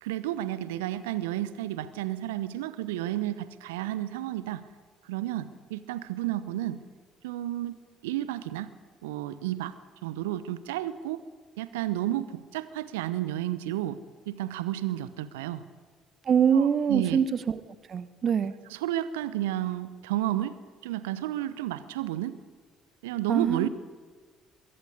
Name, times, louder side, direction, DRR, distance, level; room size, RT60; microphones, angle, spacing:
voice 1, 0.0-4.7 5.0-6.8 7.2-7.8 8.0-8.7 9.0-11.2 11.6-14.0 14.3-15.6 16.5-17.2 18.7-20.6 20.8-22.4 23.0-23.7, right 13 dB, 75° right, 15 dB, 0.9 m, -32 dB
voice 2, 16.2-17.6 17.9-18.5 23.3-23.7, right 7 dB, 45° right, 15 dB, 1.1 m, -24 dB
22.5 x 16.5 x 8.3 m, 1.5 s
figure-of-eight pair, 50°, 0 cm